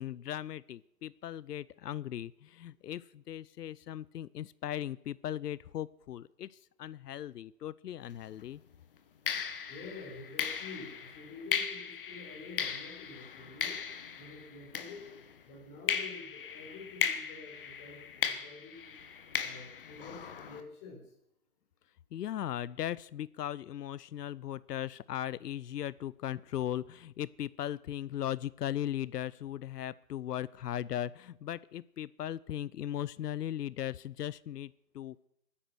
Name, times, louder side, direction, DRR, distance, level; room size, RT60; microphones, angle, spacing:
voice 1, 0.0-8.6 22.1-35.2, left 11 dB, 85° left, 20 dB, 0.6 m, -38 dB
sound 1, 8.1-8.3 9.3-15.4 15.9-20.6, left 7 dB, 35° left, 1.2 m, -37 dB
voice 2, 9.7-13.7 14.2-15.0 15.4-19.0 19.4-21.0, left 3 dB, 20° left, -1 dB, 4.1 m, -48 dB
22.0 x 10.0 x 6.1 m, 0.78 s
hypercardioid pair, 170°, 46 cm